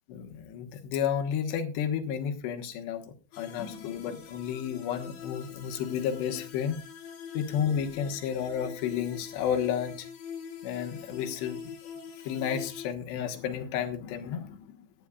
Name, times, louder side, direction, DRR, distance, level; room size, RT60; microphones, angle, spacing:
voice 1, 0.1-6.8 7.3-10.1 10.6-11.6 12.2-14.8, left 8 dB, 75° left, 5 dB, 3.5 m, -32 dB
sound 1, 3.3-12.9, left 7 dB, 60° left, 3.4 m, -44 dB
18.0 x 11.5 x 2.4 m, 0.32 s
omnidirectional pair, 5.0 m